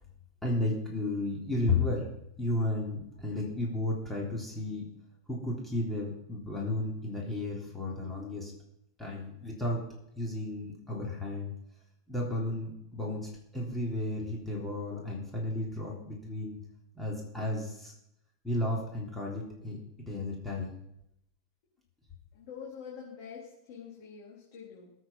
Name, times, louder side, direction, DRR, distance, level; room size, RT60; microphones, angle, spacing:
voice 1, 0.4-2.1 2.4-4.9 5.3-8.5 9.0-9.8 10.2-11.5 12.1-16.6 16.9-17.9 18.4-20.7, left 2 dB, 5° left, -3 dB, 3.6 m, -33 dB
voice 2, 22.3-24.9, left 6 dB, 55° left, -4 dB, 3.9 m, -46 dB
19.0 x 8.4 x 5.8 m, 0.78 s
supercardioid pair, 135°, 2 cm